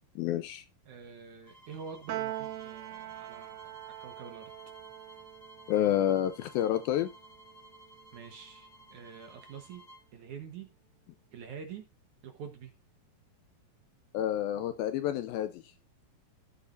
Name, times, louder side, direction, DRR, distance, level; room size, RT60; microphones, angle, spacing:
voice 1, 0.2-0.6 5.7-7.1 14.1-15.6, left 11 dB, 80° left, 11 dB, 2.2 m, -29 dB
voice 2, 0.9-4.5 8.1-9.8 10.1-10.7 11.3-11.9 12.2-12.7, right 6 dB, 60° right, 6 dB, 2.2 m, -46 dB
sound 1, 1.4-10.1, equal, 15° left, 4.6 m, -55 dB
Piano, 2.1-8.6, right 14 dB, 85° right, 2.7 m, -43 dB
15.5 x 7.3 x 2.6 m, 0.24 s
omnidirectional pair, 4.7 m